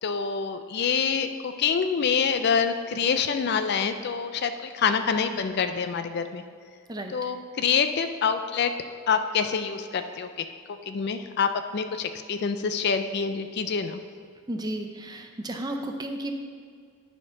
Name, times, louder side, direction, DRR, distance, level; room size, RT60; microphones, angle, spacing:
voice 1, 0.0-6.4 7.1-8.7 9.1-10.3 10.9-14.0, left 6 dB, 50° left, 9 dB, 0.4 m, -26 dB
voice 2, 14.5-16.3, right 1 dB, 20° right, 4 dB, 0.6 m, -33 dB
9.8 x 4.4 x 5.8 m, 2.1 s
head